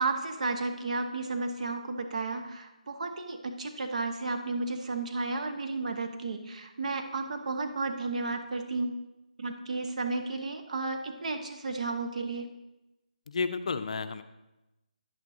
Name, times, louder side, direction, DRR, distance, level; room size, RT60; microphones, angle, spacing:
voice 1, 0.0-9.0 9.4-12.5, right 3 dB, 60° right, 5 dB, 1.0 m, -33 dB
voice 2, 13.3-14.2, left 4 dB, 55° left, 10 dB, 0.5 m, -31 dB
10.5 x 9.1 x 2.8 m, 0.98 s
figure-of-eight pair, 160°, 4 cm